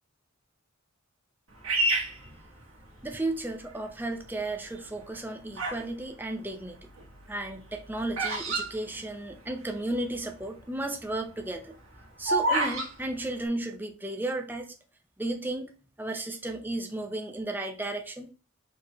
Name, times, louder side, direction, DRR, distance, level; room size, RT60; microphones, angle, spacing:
Bird vocalization bird call bird song, 1.6-3.2 3.8-4.2 5.0-5.9 6.2-9.7 9.9-10.0 10.2-10.6 11.0-12.9, right 2 dB, 80° right, 1.4 m, -29 dB
voice 1, 3.0-6.9 7.3-11.8 12.2-14.7 15.2-15.7 16.0-18.3, right 2 dB, 10° right, 4 dB, 0.5 m, -34 dB
4.5 x 3.2 x 2.9 m, 0.37 s
head